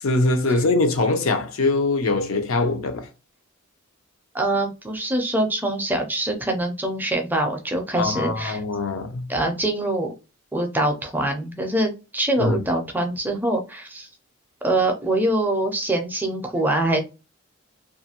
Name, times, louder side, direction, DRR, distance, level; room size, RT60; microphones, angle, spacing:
voice 1, 0.0-3.1 8.0-9.3 12.4-12.6, left 2 dB, 80° left, 0.6 m, -22 dB
voice 2, 4.3-8.6 9.3-10.1 10.5-14.1 14.6-17.0, right 1 dB, 10° right, 0.4 m, -24 dB
2.5 x 2.4 x 2.8 m
head